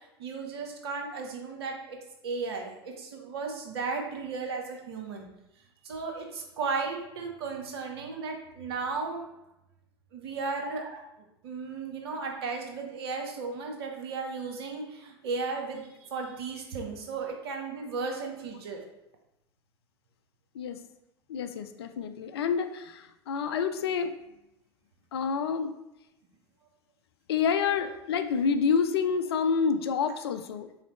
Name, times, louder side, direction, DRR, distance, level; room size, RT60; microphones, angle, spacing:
voice 1, 0.2-2.0 2.2-5.3 5.8-9.2 10.1-11.0 11.4-18.8, right 4 dB, 70° right, 2 dB, 0.8 m, -35 dB
voice 2, 21.3-24.1 25.1-25.7 27.3-30.7, left 6 dB, 75° left, 9 dB, 0.4 m, -28 dB
4.0 x 3.2 x 3.0 m, 0.88 s
hypercardioid pair, 80°, 13 cm